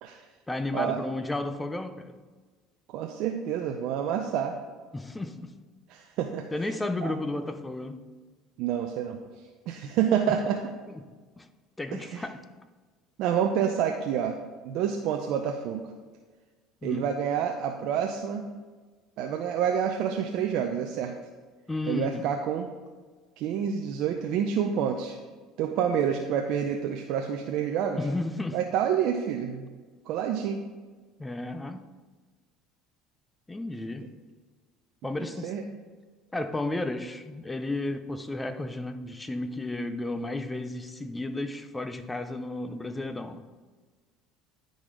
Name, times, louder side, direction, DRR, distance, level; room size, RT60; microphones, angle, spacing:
voice 1, 0.5-2.2 4.9-5.5 6.5-8.1 11.4-11.5 11.8-12.4 16.8-17.1 21.7-22.2 28.0-28.6 31.2-31.9 33.5-34.1 35.0-35.5 36.3-43.4, left 2 dB, 15° left, 0.6 m, -33 dB
voice 2, 2.9-4.6 5.9-6.5 7.0-7.1 8.6-9.2 9.7-10.6 11.9-12.2 13.2-14.4 14.6-15.8 16.8-18.5 19.2-21.1 21.9-22.7 23.4-25.2 25.6-28.0 28.5-29.7 30.1-30.7 35.4-35.6, right 8 dB, 70° right, 0.6 m, -28 dB
10.5 x 3.9 x 4.9 m
supercardioid pair, 90°, 0 cm